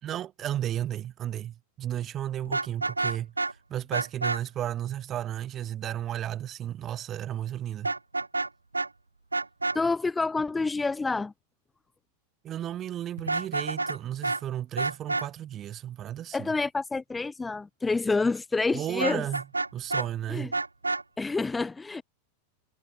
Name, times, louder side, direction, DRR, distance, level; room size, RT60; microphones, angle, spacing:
voice 1, 0.0-3.3 3.7-7.9 12.4-16.5 18.7-19.5 19.7-20.6, right 11 dB, 30° right, 3.7 m, -33 dB
Vehicle horn car horn honking, 2.5-3.5 3.9-4.4 7.8-8.5 8.7-8.9 9.3-9.8 13.2-14.0 14.2-14.4 14.8-15.3 19.0-20.1 20.5-21.0, right 3 dB, 80° right, 1.0 m, -28 dB
voice 2, 9.7-11.3 16.3-19.3 20.3-20.5 21.2-22.0, left 3 dB, 10° left, 0.9 m, -28 dB
figure-of-eight pair, 90°, 0 cm